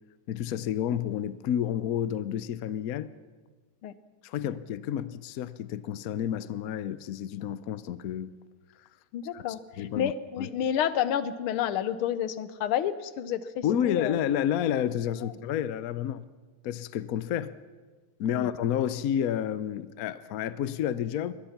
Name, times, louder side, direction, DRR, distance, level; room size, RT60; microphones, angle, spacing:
voice 1, 0.3-3.1 4.2-8.3 9.3-9.4 9.8-10.1 10.4-10.5 13.6-16.3 16.6-17.5 18.2-21.3, left 10 dB, 65° left, 0.9 m, -30 dB
voice 2, 9.1-14.2 15.2-15.3 18.3-18.5, left 9 dB, 90° left, 1.7 m, -30 dB
24.0 x 19.5 x 5.9 m
omnidirectional pair, 2.3 m